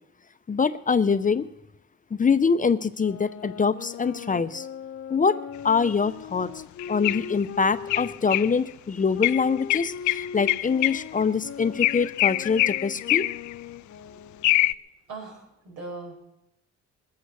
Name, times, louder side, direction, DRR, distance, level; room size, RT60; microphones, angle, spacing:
voice 1, 0.5-1.5 2.1-4.7 5.1-5.4 5.6-6.5 6.9-13.3, left 5 dB, 25° left, 12 dB, 0.7 m, -24 dB
sound 1, 3.0-8.5 9.1-14.7, left 7 dB, 50° left, 0.9 m, -40 dB
sound 2, 6.8-7.3 7.9-8.5 9.2-11.2 11.8-13.5 14.4-14.7, left 17 dB, 75° left, 0.4 m, -24 dB
voice 2, 15.1-16.2, right 3 dB, 90° right, -1 dB, 6.0 m, -40 dB
21.0 x 8.9 x 6.9 m, 0.87 s
cardioid pair, 90°, 30 cm